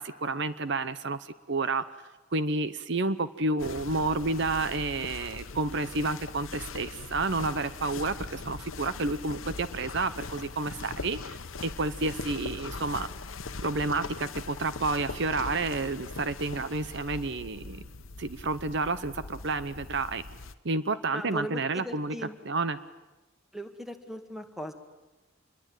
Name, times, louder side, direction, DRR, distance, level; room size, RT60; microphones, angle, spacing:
voice 1, 0.0-1.8 2.3-11.4 11.6-13.1 13.6-17.9 18.2-20.2 20.6-22.1 22.4-22.8, right 3 dB, 60° right, 13 dB, 0.9 m, -30 dB
sound 1, 3.6-20.5, left 3 dB, 85° left, 1.1 m, -41 dB
voice 2, 21.1-22.4 23.5-24.7, equal, ahead, 6 dB, 2.0 m, -38 dB
27.5 x 22.5 x 9.1 m, 1.1 s
head